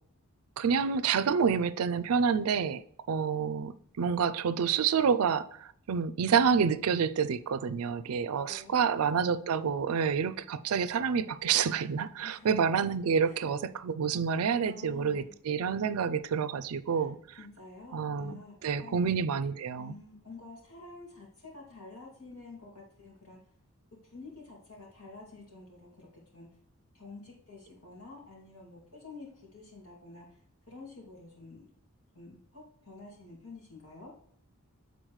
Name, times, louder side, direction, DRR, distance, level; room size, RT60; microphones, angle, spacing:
voice 1, 0.6-2.8 3.1-17.2 17.9-19.9, right 6 dB, 80° right, 0.4 m, -28 dB
voice 2, 8.5-8.8 12.2-12.5 13.2-13.5 14.6-15.4 16.9-18.9 19.8-23.4 24.1-26.5 26.9-30.4 30.7-31.7 32.1-34.1, left 3 dB, 80° left, 2.4 m, -49 dB
8.1 x 4.0 x 3.1 m
head